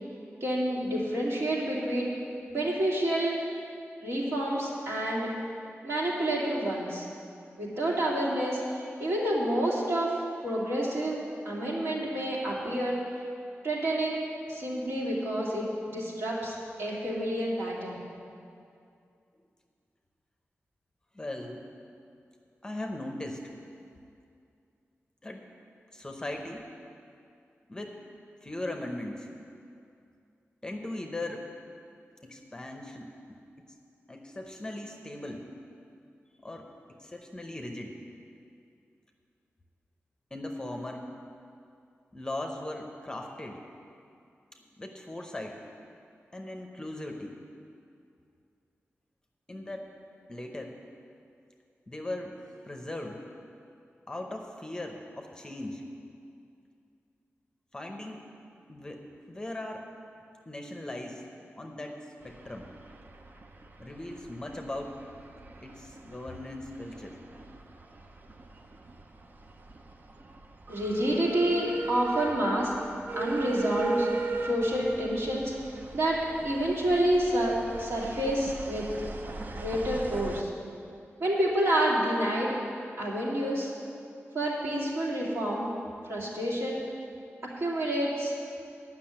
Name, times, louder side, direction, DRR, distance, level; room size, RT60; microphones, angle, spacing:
voice 1, 0.4-2.1 2.5-3.4 4.0-5.3 5.8-7.1 7.6-8.6 9.0-11.2 11.4-13.0 13.6-18.0 70.7-72.7 73.2-74.1 74.4-78.9 79.5-80.5 81.2-82.6 83.0-83.7 84.3-85.7 86.0-86.8 87.6-88.4, right 1 dB, 60° right, -5 dB, 2.4 m, -28 dB
voice 2, 21.1-21.7 22.6-23.5 25.2-25.4 25.9-26.7 27.7-28.0 28.4-29.3 30.6-31.5 32.2-33.7 34.1-35.5 36.4-36.7 37.0-38.0 40.3-41.1 42.1-43.6 44.8-45.6 46.3-47.4 49.5-49.9 50.3-50.8 51.9-52.4 52.7-53.2 54.1-55.8 57.7-58.2 58.7-59.9 60.5-61.3 61.6-62.7 63.8-65.0 65.6-67.2, left 1 dB, 15° left, 2 dB, 0.8 m, -39 dB
sound 1, 62.2-80.4, right 3 dB, 40° right, 0.6 m, -38 dB
10.0 x 6.1 x 8.7 m, 2.5 s
wide cardioid pair, 155°, 5 cm